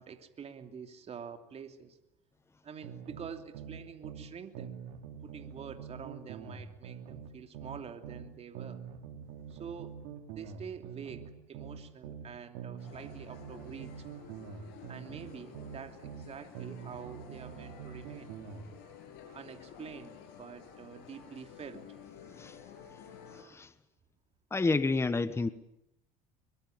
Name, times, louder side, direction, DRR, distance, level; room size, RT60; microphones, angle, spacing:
voice 1, 0.0-2.0 2.6-4.7 5.2-8.8 9.5-10.0 10.3-13.9 14.9-18.3 19.3-21.8, right 7 dB, 35° right, 6 dB, 3.1 m, -46 dB
sound 1, 2.8-4.3 4.6-8.3 8.6-12.3 12.6-16.3 16.6-18.7, right 7 dB, 75° right, 4.2 m, -45 dB
sound 2, 12.8-23.4, left 7 dB, 70° left, 6.9 m, -52 dB
voice 2, 23.3-23.7 24.5-25.5, left 3 dB, 15° left, 13 dB, 1.2 m, -30 dB
23.0 x 23.0 x 9.2 m, 0.81 s
supercardioid pair, 100°, 18 cm